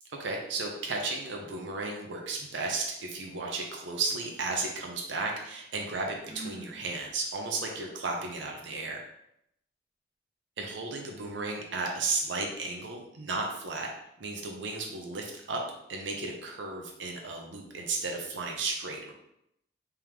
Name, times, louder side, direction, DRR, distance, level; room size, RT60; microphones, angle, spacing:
voice 1, 0.2-9.0 10.6-13.9 14.2-15.6 15.9-19.1, right 3 dB, 75° right, 0 dB, 0.7 m, -34 dB
Sigh, 6.1-6.8, right 2 dB, 20° left, 0.6 m, -44 dB
3.5 x 3.5 x 3.1 m, 0.77 s
head